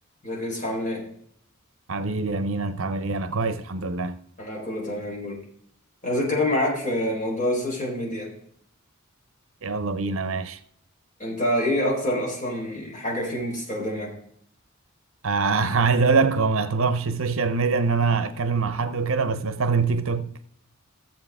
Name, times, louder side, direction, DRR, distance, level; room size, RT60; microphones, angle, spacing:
voice 1, 0.2-1.0 4.4-5.4 6.0-8.3 11.2-14.1, left 1 dB, 35° left, 4.3 m, -26 dB
voice 2, 1.9-4.1 9.6-10.6 15.2-20.4, right 4 dB, 65° right, 0.7 m, -24 dB
15.0 x 7.5 x 3.6 m
head